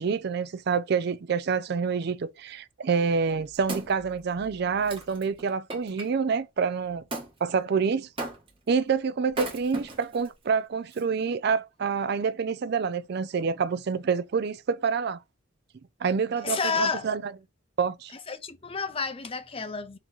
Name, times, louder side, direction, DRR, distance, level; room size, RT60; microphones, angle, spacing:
voice 1, 0.0-7.0 7.4-8.1 8.7-15.2 16.0-17.3 17.8-18.1, right 5 dB, 50° right, 0.4 m, -27 dB
Wood, 3.1-6.1 7.1-7.3 8.2-8.7 9.3-10.3 10.9-11.0, right 2 dB, 25° right, 1.3 m, -37 dB
voice 2, 16.4-17.1 18.3-20.0, left 5 dB, 25° left, 0.5 m, -30 dB
3.9 x 3.0 x 3.7 m
head